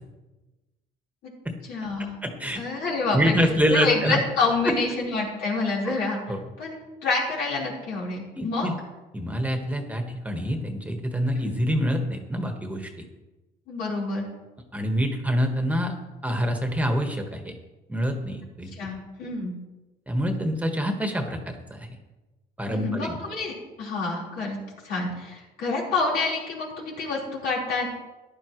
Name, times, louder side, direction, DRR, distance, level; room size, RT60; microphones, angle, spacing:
voice 1, 1.7-2.2 2.5-3.3 3.7-6.2 6.6-8.7 11.4-11.5 13.7-14.3 18.8-19.6 22.7-24.6 24.8-27.9, left 3 dB, 75° left, -4 dB, 4.2 m, -28 dB
voice 2, 2.2-2.6 3.1-4.2 4.6-4.7 5.8-5.9 6.3-6.4 8.4-8.7 9.1-12.9 14.7-15.9 16.2-17.5 17.9-18.7 20.1-21.9 22.6-23.2, equal, 10° right, 4 dB, 1.4 m, -26 dB
14.5 x 11.0 x 3.1 m, 1.1 s
cardioid pair, 110°, 17 cm